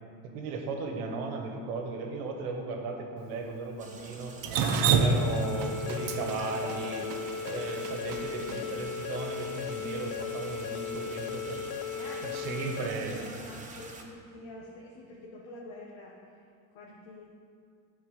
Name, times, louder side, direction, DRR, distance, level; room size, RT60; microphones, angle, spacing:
voice 1, 0.2-4.3 4.9-7.1 7.4-11.6 12.2-13.3, right 4 dB, 90° right, 3 dB, 1.4 m, -36 dB
sound 1, 3.8-14.0, right 3 dB, 20° right, 1.1 m, -47 dB
Drip, 4.4-8.6, right 5 dB, 55° right, 0.8 m, -27 dB
sound 2, 4.9-12.9, left 7 dB, 45° left, 0.5 m, -37 dB
voice 2, 8.4-8.8 11.9-16.1 16.7-17.3, left 2 dB, 85° left, -3 dB, 1.3 m, -46 dB
9.7 x 4.6 x 6.6 m, 2.4 s
cardioid pair, 115°, 39 cm